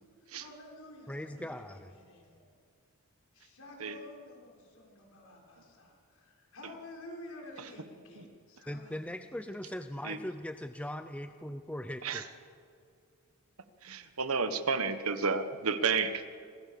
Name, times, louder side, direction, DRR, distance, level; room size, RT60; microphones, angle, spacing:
voice 1, 0.0-2.5 3.3-9.1, left 1 dB, 70° left, 0 dB, 6.2 m, -51 dB
voice 2, 1.1-1.9 8.7-12.2, left 1 dB, 5° left, 8 dB, 0.7 m, -40 dB
voice 3, 13.8-16.3, right 4 dB, 75° right, 10 dB, 1.4 m, -32 dB
27.5 x 24.5 x 6.9 m, 2.3 s
head